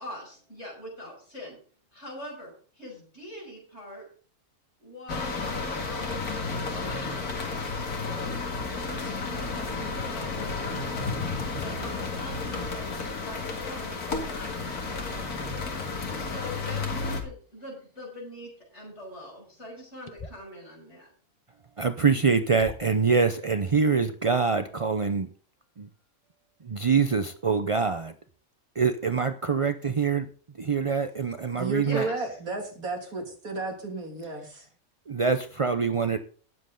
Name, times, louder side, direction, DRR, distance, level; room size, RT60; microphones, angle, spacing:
voice 1, 0.0-1.6 1.9-4.0 4.8-8.4 8.8-11.2 11.6-15.5 16.1-21.1 31.8-32.3, equal, 50° left, -1 dB, 6.6 m, -43 dB
sound 1, 5.1-17.2, left 4 dB, 85° left, 2.5 m, -32 dB
sound 2, 20.0-20.5 21.9-22.0 22.6-23.1, left 3 dB, 30° left, 0.9 m, -42 dB
voice 2, 21.8-25.3 25.8-25.9 26.6-28.1 28.7-30.3 30.5-32.1 35.1-36.2, right 5 dB, 55° right, 9 dB, 0.3 m, -25 dB
voice 3, 31.6-34.7, right 3 dB, 75° right, 2 dB, 3.2 m, -33 dB
18.5 x 7.7 x 3.8 m, 0.43 s
omnidirectional pair, 1.5 m